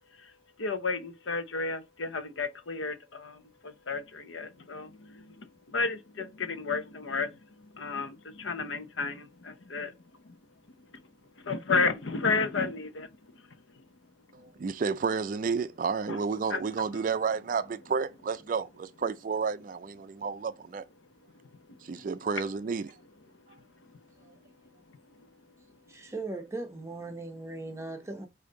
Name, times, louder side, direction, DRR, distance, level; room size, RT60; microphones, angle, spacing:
voice 1, 0.6-7.3 7.7-9.9 11.4-13.1 16.5-16.6, left 4 dB, 90° left, 0.8 m, -32 dB
voice 2, 14.3-20.8 21.8-22.9, right 5 dB, 45° right, 0.3 m, -31 dB
voice 3, 25.9-28.3, right 2 dB, 15° right, 0.8 m, -38 dB
5.1 x 2.7 x 3.8 m
head